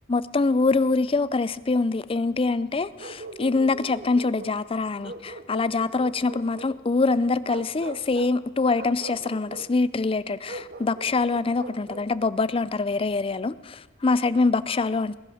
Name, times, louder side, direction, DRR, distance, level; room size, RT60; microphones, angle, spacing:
voice 1, 0.1-15.2, left 3 dB, 25° left, 0.5 m, -24 dB
Bark, 3.0-4.6 5.0-6.8 7.4-8.4 8.7-9.7 10.5-12.1, right 2 dB, 45° right, 1.0 m, -40 dB
20.5 x 11.0 x 6.4 m
head